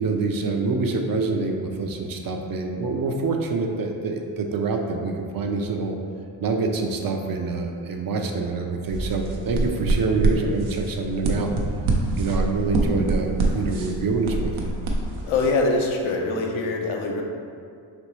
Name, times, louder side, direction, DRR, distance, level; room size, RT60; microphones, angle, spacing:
voice 1, 0.0-6.0 6.4-11.5 12.2-14.7, right 3 dB, 50° right, 3 dB, 0.5 m, -26 dB
sound 1, 8.9-15.5, right 2 dB, 85° right, 0.7 m, -25 dB
voice 2, 15.2-17.2, left 3 dB, 75° left, 1 dB, 0.7 m, -23 dB
4.2 x 2.9 x 3.1 m, 2.3 s
cardioid pair, 65°, 48 cm